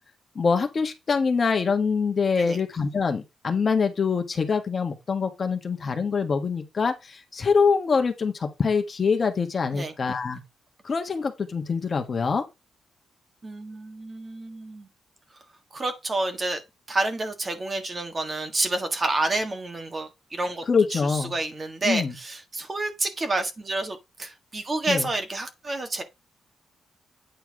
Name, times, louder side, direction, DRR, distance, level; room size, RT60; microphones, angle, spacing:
voice 1, 0.3-10.4 10.8-12.4 20.7-21.3 21.8-22.1 24.9-25.1, left 5 dB, 35° left, 1.4 m, -24 dB
voice 2, 13.4-14.9 15.7-16.6 16.9-20.6 20.9-26.0, right 2 dB, 30° right, 1.6 m, -29 dB
9.1 x 4.6 x 4.7 m
cardioid pair, 135°, 0 cm